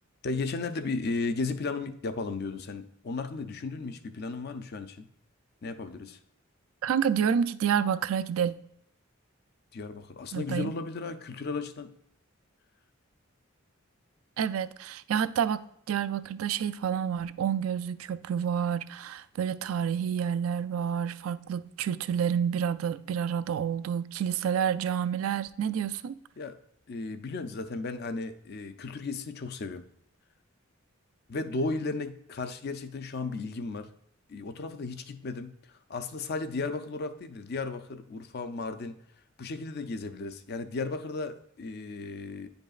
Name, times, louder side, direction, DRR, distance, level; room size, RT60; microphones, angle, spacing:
voice 1, 0.2-5.1 5.6-6.2 9.7-11.9 26.4-26.6 26.9-29.8 31.3-33.9 34.3-35.5 35.9-39.0 39.4-42.5, left 3 dB, 50° left, 0.5 m, -35 dB
voice 2, 6.8-8.5 10.3-10.7 14.4-26.2, right 8 dB, 80° right, 0.3 m, -29 dB
9.6 x 5.2 x 2.4 m
head